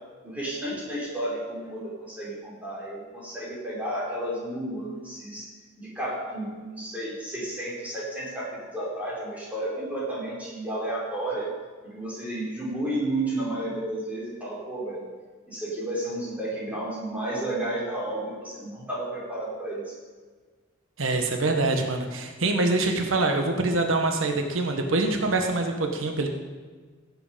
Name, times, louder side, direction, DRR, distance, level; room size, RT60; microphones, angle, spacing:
voice 1, 0.2-5.5 5.8-11.5 11.9-15.0 15.5-20.0, right 1 dB, 10° right, -7 dB, 4.6 m, -32 dB
voice 2, 21.0-26.3, right 2 dB, 90° right, 4 dB, 1.3 m, -25 dB
16.0 x 8.0 x 5.2 m, 1.4 s
head